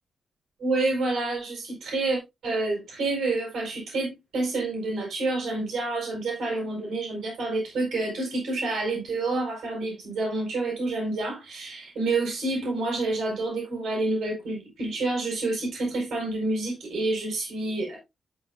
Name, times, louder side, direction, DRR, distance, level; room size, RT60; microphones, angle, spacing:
voice 1, 0.6-18.0, right 2 dB, 90° right, 5.6 m, -28 dB
13.5 x 5.8 x 2.5 m
wide cardioid pair, 150°, 0 cm